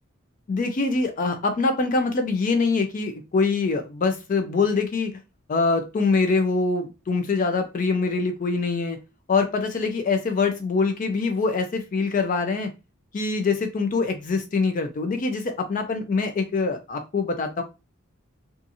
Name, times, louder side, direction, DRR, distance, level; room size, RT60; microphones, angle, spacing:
voice 1, 0.5-5.1 5.5-9.0 9.3-12.7 13.1-17.6, left 4 dB, 40° left, 6 dB, 0.3 m, -24 dB
2.6 x 2.4 x 2.6 m, 0.26 s
head